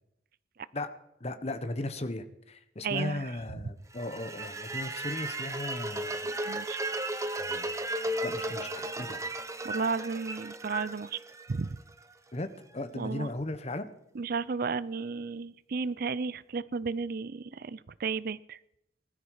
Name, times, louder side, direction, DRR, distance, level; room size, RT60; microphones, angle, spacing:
voice 1, 1.2-6.2 7.4-7.8 8.2-9.2 12.3-13.9, left 2 dB, 35° left, 9 dB, 1.2 m, -37 dB
voice 2, 2.8-3.2 6.5-6.8 9.6-11.2 11.5-11.8 12.9-13.3 14.2-18.6, right 4 dB, 55° right, 18 dB, 0.5 m, -33 dB
sound 1, 3.9-12.0, right 1 dB, 15° right, 0.8 m, -35 dB
20.0 x 13.0 x 4.9 m, 0.79 s
head